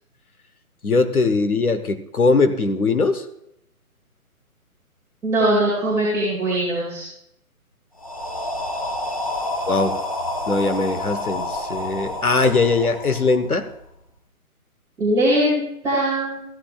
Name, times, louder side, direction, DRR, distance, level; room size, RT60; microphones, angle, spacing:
voice 1, 0.8-3.2 9.7-10.0 10.5-13.7, left 3 dB, 75° left, 8 dB, 1.3 m, -20 dB
voice 2, 5.2-7.1 15.0-16.4, right 1 dB, 5° right, -10 dB, 2.5 m, -21 dB
sound 1, 8.0-13.9, left 2 dB, 25° left, 0.5 m, -29 dB
14.5 x 11.0 x 2.4 m, 0.78 s
figure-of-eight pair, 140°, 44 cm